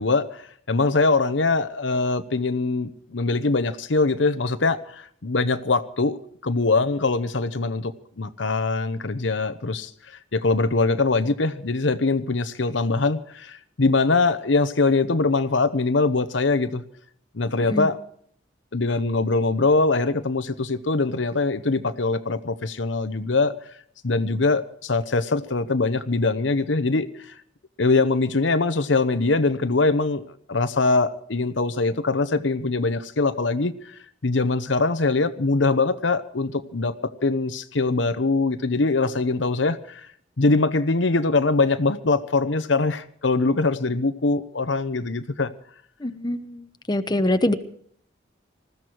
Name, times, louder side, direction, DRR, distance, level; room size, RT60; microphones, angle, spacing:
voice 1, 0.0-9.9 10.3-16.8 17.3-18.0 18.7-23.5 24.0-27.1 27.8-30.2 30.5-40.1 40.4-45.5, left 3 dB, 80° left, 11 dB, 1.0 m, -22 dB
voice 2, 46.0-47.5, left 1 dB, 25° left, 9 dB, 1.0 m, -24 dB
20.5 x 15.0 x 4.6 m, 0.63 s
head